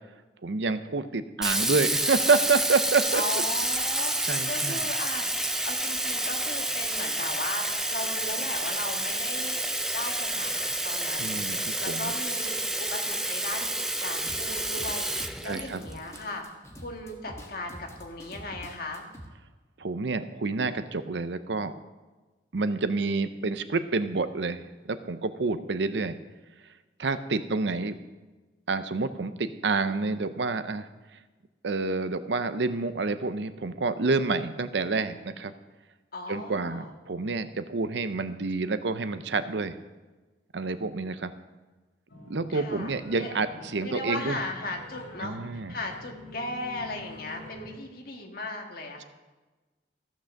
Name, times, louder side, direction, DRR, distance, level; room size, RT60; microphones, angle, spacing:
voice 1, 0.4-3.2 4.3-4.9 11.2-12.1 15.4-15.8 19.8-21.7 22.5-26.2 27.0-27.9 28.7-30.9 31.6-35.5 36.3-39.8 40.5-41.3 42.3-44.4 45.2-45.7, right 3 dB, 70° right, 11 dB, 0.7 m, -28 dB
Sink (filling or washing), 1.4-16.2, right 1 dB, 5° right, 0.4 m, -29 dB
voice 2, 3.1-5.3 5.6-9.6 9.9-11.4 11.8-13.7 14.0-15.1 15.4-16.5 16.8-19.1 36.1-36.9 42.5-43.3 43.8-49.0, left 2 dB, 50° left, 2 dB, 1.6 m, -37 dB
sound 1, 14.3-19.3, equal, 15° left, 1.3 m, -46 dB
sound 2, 42.1-47.8, left 2 dB, 90° left, 2.3 m, -46 dB
14.5 x 6.1 x 6.5 m, 1.2 s
head